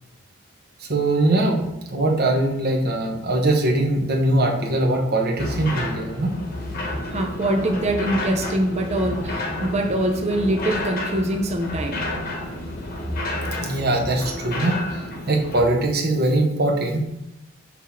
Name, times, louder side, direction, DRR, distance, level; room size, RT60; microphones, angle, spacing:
voice 1, 0.9-6.3 13.6-14.7 15.3-17.2, right 2 dB, 50° right, 0 dB, 1.1 m, -21 dB
sound 1, 5.4-15.6, left 1 dB, 45° left, 1.0 m, -30 dB
voice 2, 7.1-12.1, right 1 dB, 30° right, 4 dB, 0.5 m, -24 dB
5.9 x 3.0 x 5.7 m, 0.84 s
head